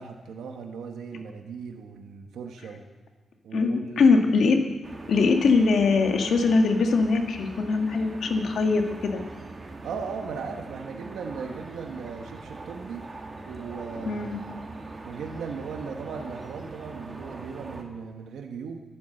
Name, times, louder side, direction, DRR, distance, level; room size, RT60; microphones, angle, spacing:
voice 1, 0.0-2.8 3.4-4.2 9.6-13.0 13.4-14.4 15.0-18.8, right 5 dB, 90° right, 4 dB, 1.3 m, -37 dB
voice 2, 3.5-4.6 5.1-9.2 14.1-14.4, left 4 dB, 75° left, 4 dB, 1.9 m, -22 dB
sound 1, 4.8-17.8, right 2 dB, 40° right, 2.6 m, -41 dB
12.5 x 11.5 x 7.9 m, 1.2 s
cardioid pair, 70°, 0 cm